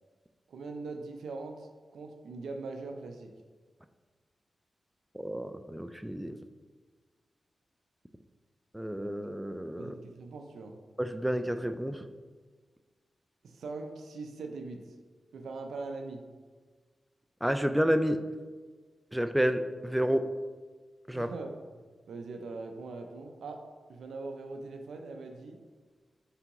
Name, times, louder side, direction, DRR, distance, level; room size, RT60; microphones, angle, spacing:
voice 1, 0.5-3.3 9.8-10.8 13.4-14.8 15.3-16.2 20.0-20.2 21.1-21.5 22.1-23.6 23.9-25.6, right 3 dB, 90° right, 4 dB, 0.4 m, -41 dB
voice 2, 5.1-6.4 8.7-9.9 11.0-12.0 17.4-18.2 19.1-20.2 21.1-21.3, equal, 5° right, 8 dB, 0.3 m, -30 dB
4.6 x 3.4 x 2.9 m, 1.4 s
cardioid pair, 50°, 0 cm